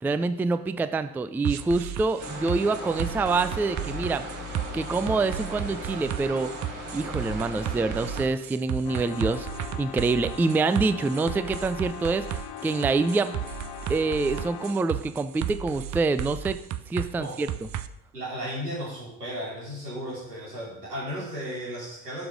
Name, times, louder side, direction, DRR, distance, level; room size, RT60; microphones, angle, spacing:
voice 1, 0.0-4.3 4.7-6.5 6.9-9.5 9.8-12.2 12.6-13.4 13.9-16.6 16.9-17.5, right 3 dB, 5° right, 12 dB, 0.4 m, -26 dB
sound 1, 1.4-17.9, right 11 dB, 40° right, 0.7 m, -34 dB
sound 2, 2.2-8.2, equal, 60° right, 4.1 m, -37 dB
sound 3, 8.8-14.9, left 9 dB, 55° left, 1.3 m, -40 dB
voice 2, 18.1-22.3, equal, 90° right, -6 dB, 4.0 m, -35 dB
11.5 x 6.3 x 5.1 m, 0.82 s
figure-of-eight pair, 60°, 46 cm